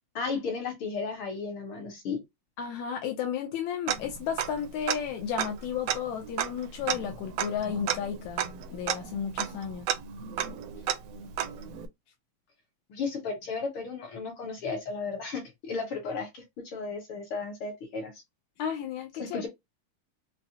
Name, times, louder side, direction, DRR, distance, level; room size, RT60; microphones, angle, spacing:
voice 1, 0.1-2.2 12.9-18.2 19.2-19.5, left 4 dB, 60° left, 1.6 m, -34 dB
voice 2, 2.6-8.4 8.7-10.0 18.6-19.4, left 8 dB, 80° left, 2.0 m, -33 dB
Tick-tock, 3.9-4.6 4.9-5.0 5.4-11.9, right 10 dB, 80° right, 1.7 m, -32 dB
5.6 x 2.1 x 2.7 m
omnidirectional pair, 3.3 m